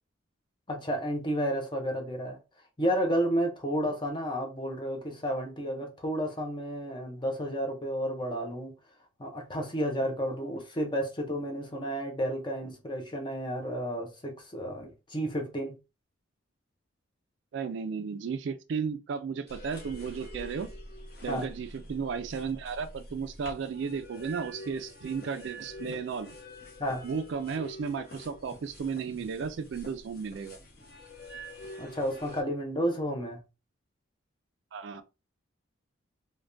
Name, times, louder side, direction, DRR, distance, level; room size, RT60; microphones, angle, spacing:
voice 1, 0.7-2.4 2.8-8.7 9.2-15.8 21.3-21.5 26.8-27.0 31.8-33.4, equal, 25° left, 0.6 m, -31 dB
voice 2, 17.5-20.7 21.2-26.3 27.0-30.6 34.7-35.0, right 6 dB, 60° right, 0.3 m, -34 dB
sound 1, 19.5-32.4, equal, 50° left, 0.8 m, -46 dB
3.3 x 2.2 x 2.5 m
head